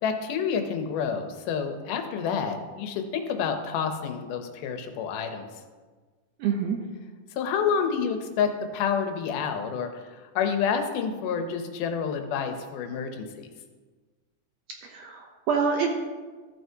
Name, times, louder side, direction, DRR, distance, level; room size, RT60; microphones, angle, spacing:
voice 1, 0.0-5.5 7.3-13.5, left 6 dB, 85° left, 6 dB, 2.4 m, -29 dB
voice 2, 6.4-6.8 14.8-15.9, right 6 dB, 75° right, 2 dB, 1.6 m, -26 dB
13.5 x 7.9 x 2.8 m, 1.4 s
omnidirectional pair, 3.6 m